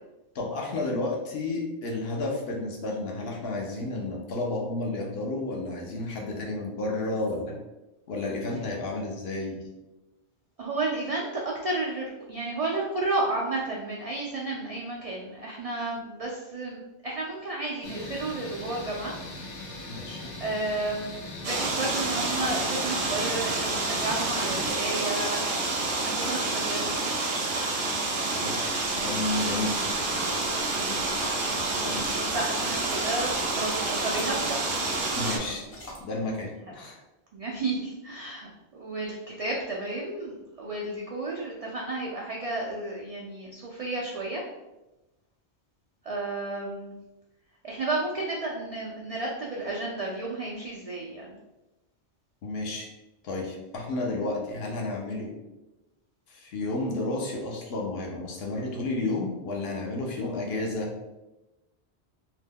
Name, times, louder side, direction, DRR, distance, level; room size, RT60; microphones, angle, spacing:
voice 1, 0.3-7.6 8.1-9.6 19.9-20.3 28.3-29.9 31.8-32.2 35.2-35.6 36.0-37.0 52.4-52.9 53.2-55.3 56.3-60.9, left 2 dB, 65° left, -1 dB, 0.9 m, -31 dB
voice 2, 10.6-19.1 19.9-20.1 20.4-25.4 26.0-27.1 30.6-31.1 32.3-34.7 37.3-38.5 38.8-44.4 46.0-46.9 47.6-51.4, right 2 dB, 65° right, -3 dB, 0.3 m, -32 dB
sound 1, 17.8-24.7, left 2 dB, 90° left, 1.0 m, -40 dB
sound 2, 21.4-35.4, right 2 dB, 80° right, 0.9 m, -28 dB
sound 3, 28.6-36.0, left 1 dB, 35° left, 0.7 m, -44 dB
2.9 x 2.1 x 3.4 m, 1.0 s
omnidirectional pair, 1.2 m